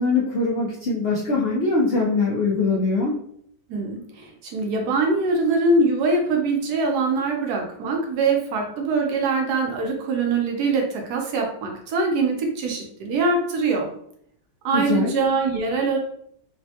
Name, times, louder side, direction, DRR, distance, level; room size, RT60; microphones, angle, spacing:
voice 1, 0.0-3.1 14.7-15.1, left 3 dB, 80° left, -5 dB, 0.5 m, -22 dB
voice 2, 3.7-13.9 14.6-16.0, right 3 dB, 70° right, 1 dB, 1.1 m, -23 dB
3.3 x 2.1 x 2.7 m, 0.67 s
omnidirectional pair, 1.8 m